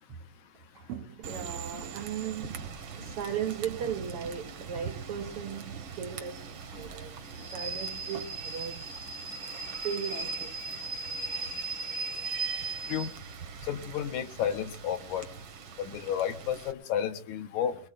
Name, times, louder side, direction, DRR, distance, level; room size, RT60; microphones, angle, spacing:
voice 1, 0.7-2.7 3.0-7.2 7.5-8.9 9.7-11.0, right 8 dB, 75° right, 1.3 m, -37 dB
Rain / Train, 1.2-16.7, right 4 dB, 55° right, 1.5 m, -39 dB
voice 2, 13.6-15.3 15.8-17.8, left 9 dB, 70° left, 2.2 m, -31 dB
22.5 x 22.0 x 2.5 m
omnidirectional pair, 3.7 m